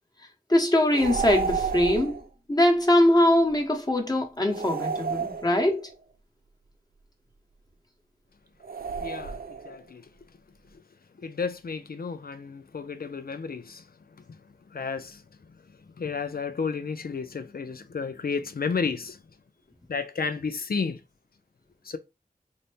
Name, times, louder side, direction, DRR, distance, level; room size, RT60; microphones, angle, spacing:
voice 1, 0.5-2.2 2.5-5.9, left 1 dB, 25° left, 1.1 m, -22 dB
sound 1, 0.9-2.3 4.5-5.9 8.6-9.8, right 5 dB, 70° right, 0.4 m, -31 dB
voice 2, 9.0-9.4 9.7-10.0 11.2-13.8 14.7-15.2 16.0-19.2 19.9-21.0 21.9-22.0, left 5 dB, 70° left, 0.5 m, -32 dB
4.0 x 2.1 x 3.3 m
wide cardioid pair, 55°, 16 cm